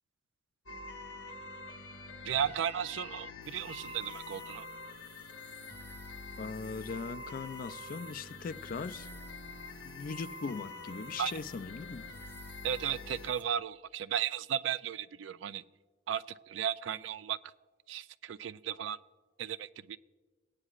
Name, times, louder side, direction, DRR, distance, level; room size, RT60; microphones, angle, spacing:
sound 1, 0.7-13.3, left 3 dB, 80° left, 0.8 m, -46 dB
voice 1, 2.2-4.7 11.2-11.3 12.6-15.6 16.1-17.5 17.9-19.0 19.4-20.0, right 9 dB, 75° right, 0.3 m, -35 dB
sound 2, 3.4-13.4, right 2 dB, 10° right, 0.9 m, -59 dB
voice 2, 6.4-9.1 9.8-12.1, left 4 dB, 45° left, 0.3 m, -40 dB
17.5 x 9.6 x 2.4 m
head